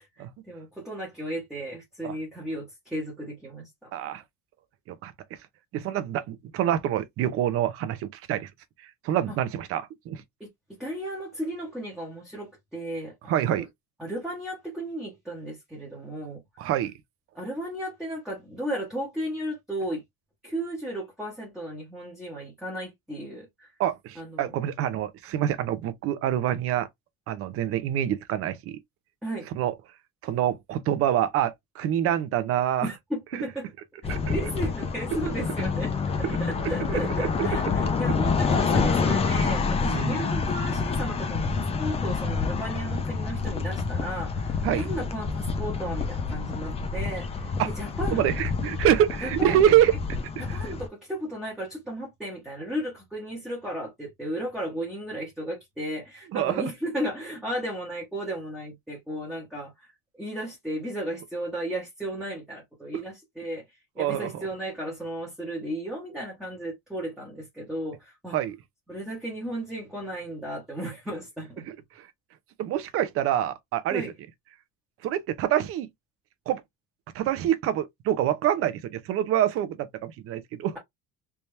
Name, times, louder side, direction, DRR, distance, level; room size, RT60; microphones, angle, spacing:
voice 1, 0.0-3.9 9.3-9.4 10.4-10.5 10.8-13.7 14.0-16.4 17.3-20.0 20.4-23.7 24.2-24.5 29.2-29.5 32.8-33.7 34.0-35.9 36.4-48.4 49.2-49.6 50.4-59.9 60.2-63.6 63.9-68.4 68.9-71.6 73.9-74.1, right 1 dB, ahead, 1.0 m, -34 dB
voice 2, 3.9-4.2 4.9-5.1 5.7-8.5 9.0-10.2 13.3-13.7 16.6-16.9 23.8-26.9 27.3-28.8 29.6-29.7 30.2-32.9 34.1-34.3 36.9-37.5 39.9-40.2 44.6-44.9 47.6-47.7 48.1-49.9 50.4-50.7 56.3-56.7 64.0-64.4 68.3-68.6 71.7-72.1 72.6-74.0 75.0-75.9 76.5-76.6 77.1-80.8, right 11 dB, 40° right, 0.6 m, -26 dB
sound 1, 34.0-50.9, left 4 dB, 15° left, 0.5 m, -28 dB
3.4 x 2.9 x 3.2 m
cardioid pair, 175°, 35 cm